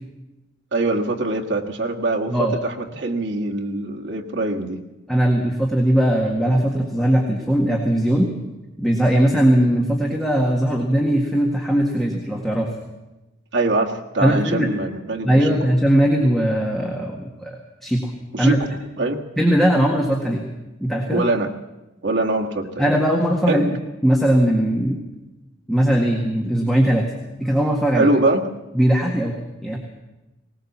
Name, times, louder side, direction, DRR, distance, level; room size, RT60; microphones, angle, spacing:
voice 1, 0.7-4.8 13.5-15.6 18.3-18.7 19.0-19.2 21.1-21.5 22.0-22.9 23.5-23.7 27.9-28.5, right 2 dB, 65° right, 0 dB, 1.7 m, -23 dB
voice 2, 5.1-8.3 8.8-12.7 14.2-14.7 15.2-17.6 17.8-18.1 18.4-18.6 19.4-20.4 20.8-21.2 22.8-23.7 24.0-25.0 25.7-27.1 27.4-28.1 28.7-29.3 29.6-29.8, equal, ahead, -1 dB, 1.8 m, -19 dB
19.5 x 18.5 x 7.3 m, 1.0 s
head